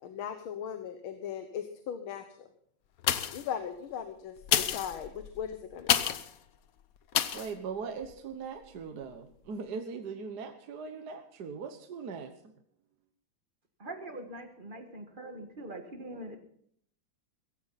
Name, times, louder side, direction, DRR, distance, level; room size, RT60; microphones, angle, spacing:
voice 1, 0.0-2.2 3.3-6.1, left 8 dB, 80° left, 8 dB, 1.9 m, -38 dB
sound 1, 3.0-3.6 4.4-6.3 7.1-7.5 8.0-8.1, left 9 dB, 60° left, 1.0 m, -29 dB
voice 2, 7.3-12.3, right 5 dB, 55° right, 7 dB, 1.5 m, -40 dB
voice 3, 13.8-16.4, right 1 dB, 25° right, 5 dB, 1.7 m, -43 dB
16.5 x 15.0 x 4.1 m, 0.64 s
omnidirectional pair, 2.3 m